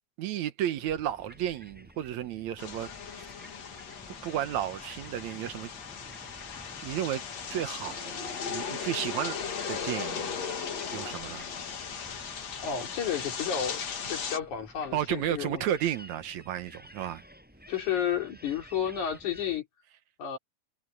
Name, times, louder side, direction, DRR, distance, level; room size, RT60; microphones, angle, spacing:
voice 1, 0.2-2.9 3.2-3.3 4.2-5.7 6.8-7.2 7.5-8.1 8.5-9.4 9.7-10.4 10.9-11.5 14.9-17.2, right 11 dB, 75° right, 2.3 m, -32 dB
sound 1, 0.8-19.6, equal, 5° right, 6.5 m, -52 dB
sound 2, 2.6-14.4, left 6 dB, 60° left, 3.3 m, -37 dB
voice 2, 12.6-13.8 14.1-15.6 17.7-19.7 20.2-20.4, left 8 dB, 80° left, 4.6 m, -31 dB
omnidirectional pair, 3.4 m